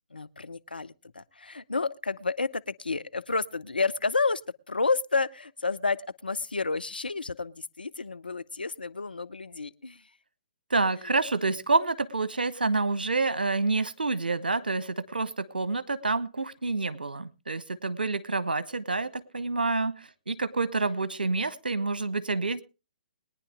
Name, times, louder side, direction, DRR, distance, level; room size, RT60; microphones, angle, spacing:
voice 1, 0.1-4.4 4.7-10.1, left 4 dB, 80° left, 0.7 m, -30 dB
voice 2, 10.7-22.6, right 3 dB, 75° right, 1.1 m, -28 dB
21.5 x 9.9 x 3.4 m
figure-of-eight pair, 125°, 5 cm